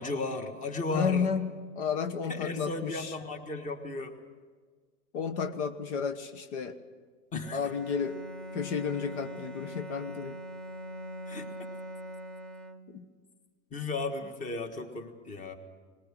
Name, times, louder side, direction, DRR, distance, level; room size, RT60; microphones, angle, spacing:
voice 1, 0.0-1.3 2.3-4.1 7.3-7.6 11.3-11.5 13.7-15.6, left 3 dB, 20° left, 7 dB, 1.5 m, -35 dB
voice 2, 0.9-3.2 5.1-6.8 7.5-8.2 8.5-10.4 12.9-13.1, left 6 dB, 65° left, 10 dB, 1.2 m, -32 dB
Bowed string instrument, 7.4-13.2, right 1 dB, ahead, 0.5 m, -42 dB
20.5 x 18.0 x 7.6 m, 1.5 s
supercardioid pair, 145°, 37 cm